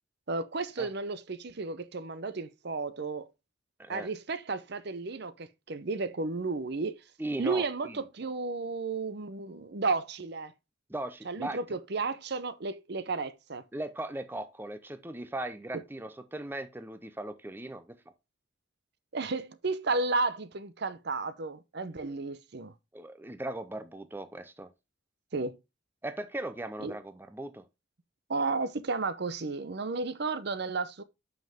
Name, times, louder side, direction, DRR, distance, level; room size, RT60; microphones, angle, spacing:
voice 1, 0.3-3.3 3.9-7.0 7.4-10.5 11.2-13.6 19.1-22.7 25.3-25.6 26.8-26.9 28.3-31.0, right 3 dB, 55° right, 0.7 m, -33 dB
voice 2, 7.2-8.0 10.9-11.6 13.7-18.0 22.9-24.7 26.0-27.6, right 1 dB, 10° right, 0.5 m, -38 dB
7.8 x 5.7 x 3.5 m
head